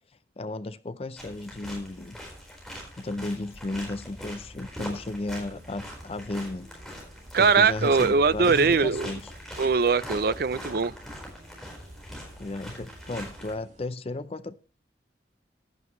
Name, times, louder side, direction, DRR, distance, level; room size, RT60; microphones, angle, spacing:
voice 1, 0.4-2.2 3.0-6.7 7.4-9.3 12.4-14.6, left 2 dB, 35° left, 0.5 m, -34 dB
sound 1, 1.2-13.5, equal, ahead, 4.4 m, -42 dB
sound 2, 5.3-13.9, equal, 40° right, 2.3 m, -51 dB
voice 2, 7.3-9.1 9.6-10.9, right 5 dB, 55° right, 0.5 m, -21 dB
15.0 x 11.0 x 3.1 m
head